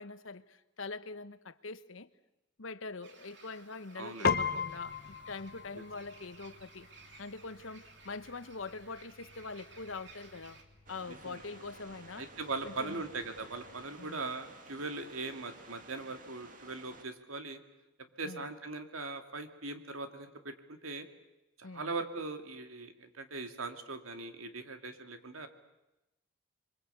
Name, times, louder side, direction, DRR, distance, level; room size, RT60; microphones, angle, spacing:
voice 1, 0.0-2.1 2.6-6.9 7.2-10.6 10.9-12.3 12.6-13.0 14.0-14.2 18.2-18.5 21.6-21.9, left 3 dB, 75° left, 13 dB, 1.1 m, -44 dB
sound 1, 3.0-10.6, right 3 dB, 55° right, 3.1 m, -57 dB
voice 2, 4.0-4.4 5.7-5.8 11.1-11.4 12.2-17.6 18.2-21.1 21.6-25.5, right 3 dB, 85° right, 6 dB, 2.5 m, -40 dB
Piano, 4.2-13.8, left 5 dB, 45° left, 1.0 m, -40 dB
sound 2, 10.9-17.0, right 2 dB, 40° right, 2.0 m, -54 dB
26.5 x 23.5 x 8.4 m, 0.95 s
head